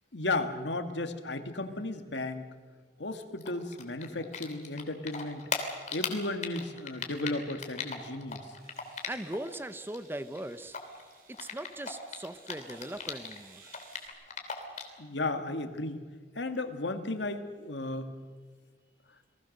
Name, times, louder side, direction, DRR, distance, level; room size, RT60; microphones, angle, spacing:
voice 1, 0.1-2.5 3.0-5.4 5.9-8.4 15.0-16.0 16.4-18.1, left 2 dB, 80° left, 7 dB, 2.0 m, -34 dB
Typing, 3.4-4.8 5.1-9.5 9.8-13.4 13.7-15.0, left 6 dB, 45° left, 3.0 m, -37 dB
sound 1, 8.5-14.1, right 4 dB, 55° right, 5.8 m, -58 dB
voice 2, 9.1-10.9 11.3-13.7, right 1 dB, 15° right, 12 dB, 0.8 m, -40 dB
29.0 x 20.0 x 6.7 m, 1.5 s
head